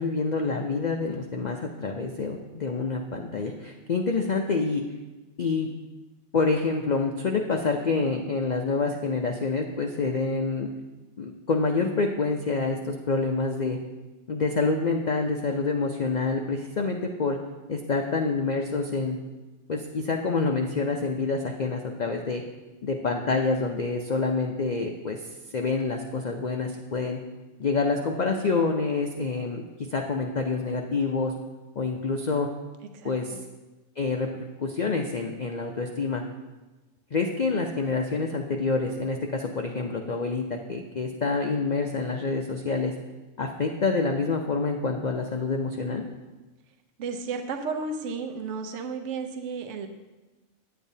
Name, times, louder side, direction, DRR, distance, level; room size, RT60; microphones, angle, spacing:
voice 1, 0.0-4.8 5.4-5.7 6.3-10.7 11.2-13.8 14.3-17.4 17.7-19.2 19.7-22.4 22.8-27.2 27.6-31.3 31.8-32.5 33.0-33.4 34.0-36.2 37.1-42.9 43.4-46.0, left 4 dB, 65° left, 2 dB, 0.4 m, -27 dB
voice 2, 32.9-33.4 47.0-49.9, right 4 dB, 65° right, 6 dB, 1.0 m, -33 dB
10.0 x 8.7 x 2.7 m, 1.2 s
omnidirectional pair, 1.5 m